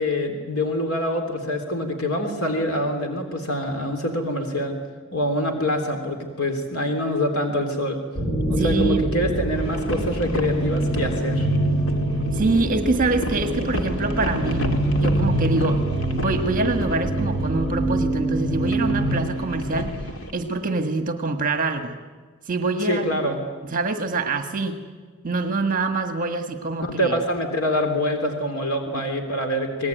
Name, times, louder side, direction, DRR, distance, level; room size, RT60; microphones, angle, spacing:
voice 1, 0.0-4.8 5.1-8.0 8.5-11.5 22.8-23.4 26.8-29.9, left 1 dB, 90° left, 4 dB, 3.4 m, -25 dB
sound 1, 8.1-20.1, right 1 dB, 20° left, 5.0 m, -25 dB
voice 2, 8.6-9.0 12.3-14.7 15.0-15.8 16.1-20.0 20.3-21.9 22.5-23.2 23.7-24.8 25.2-27.2 28.9-29.1, right 3 dB, 40° right, 7 dB, 1.7 m, -25 dB
sound 2, 9.5-20.3, equal, 65° left, 2.8 m, -33 dB
27.5 x 19.5 x 9.4 m, 1.5 s
head